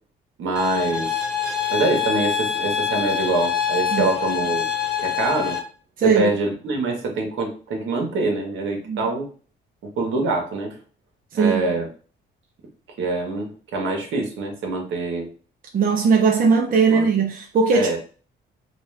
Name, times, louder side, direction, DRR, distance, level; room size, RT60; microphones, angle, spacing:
voice 1, 0.4-1.2 1.7-4.6 5.0-5.6 6.0-9.3 9.8-10.7 11.4-11.9 13.0-15.3 16.9-17.1 17.7-18.0, right 3 dB, 75° right, 1.3 m, -25 dB
sound 1, 0.6-5.6, left 8 dB, 5° right, 1.3 m, -25 dB
voice 2, 6.0-6.3 8.9-9.0 11.3-11.6 15.7-18.0, right 5 dB, 45° right, 0.7 m, -19 dB
4.1 x 2.4 x 3.3 m
cardioid pair, 90°, 20 cm